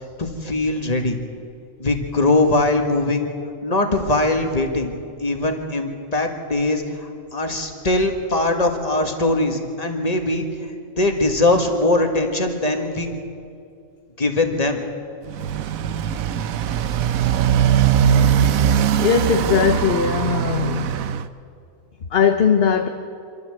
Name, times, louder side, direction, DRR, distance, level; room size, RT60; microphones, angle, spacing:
voice 1, 0.2-1.2 1.8-3.3 3.6-4.9 5.2-10.5 11.0-13.1 14.2-14.8, left 2 dB, 30° left, 4 dB, 1.8 m, -21 dB
Motorcycle, 15.2-21.3, right 9 dB, 85° right, 1.2 m, -20 dB
voice 2, 19.0-20.9 22.1-22.9, left 6 dB, 50° left, 5 dB, 1.1 m, -19 dB
25.5 x 13.5 x 7.9 m, 2.4 s
omnidirectional pair, 1.4 m